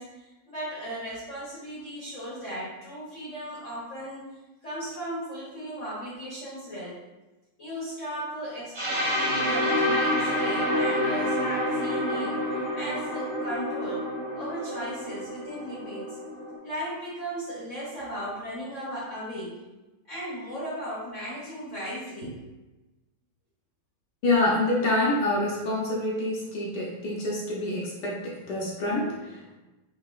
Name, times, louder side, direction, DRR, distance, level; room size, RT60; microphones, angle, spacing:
voice 1, 0.0-4.3 4.6-7.0 7.6-14.1 14.3-16.2 16.6-19.6 20.0-22.5, equal, 50° left, -8 dB, 1.0 m, -36 dB
sound 1, 8.7-16.6, left 1 dB, 50° right, 1.6 m, -28 dB
voice 2, 24.2-29.6, left 2 dB, 65° left, -3 dB, 1.1 m, -27 dB
4.8 x 2.9 x 2.4 m, 1.1 s
omnidirectional pair, 2.3 m